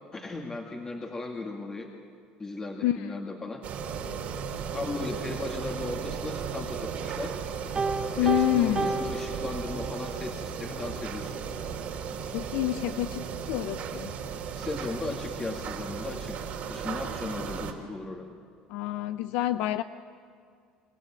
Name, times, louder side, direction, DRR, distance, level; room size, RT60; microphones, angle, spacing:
voice 1, 0.1-1.9 2.4-4.1 4.7-7.4 8.2-11.4 14.5-18.3, left 3 dB, 20° left, 0 dB, 2.1 m, -37 dB
voice 2, 2.8-3.2 8.2-9.0 12.3-14.1 18.7-19.8, left 14 dB, 75° left, 11 dB, 0.6 m, -28 dB
sound 1, 3.6-17.7, right 6 dB, 60° right, 3.2 m, -35 dB
Piano, 7.8-10.1, right 4 dB, 25° right, 1.1 m, -31 dB
28.5 x 16.0 x 8.9 m, 2.2 s
supercardioid pair, 105°, 3 cm